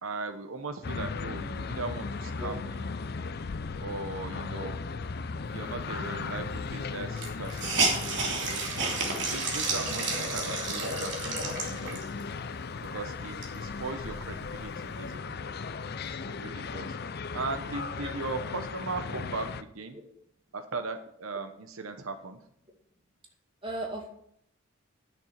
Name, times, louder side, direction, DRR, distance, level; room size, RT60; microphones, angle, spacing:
voice 1, 0.0-2.8 3.8-4.7 5.5-8.7 9.3-12.0 12.8-15.4 16.1-17.0 17.3-20.0 20.5-22.4, right 3 dB, 90° right, 8 dB, 0.9 m, -38 dB
sound 1, 0.8-19.6, left 4 dB, 50° left, 0.5 m, -37 dB
Hiss, 6.3-6.4 6.6-6.7 7.2-12.2 12.8-12.9 13.2-14.6, right 3 dB, 60° right, 3.1 m, -31 dB
voice 2, 23.6-24.1, right 1 dB, 25° right, 1 dB, 2.3 m, -36 dB
10.5 x 7.0 x 5.9 m, 0.70 s
head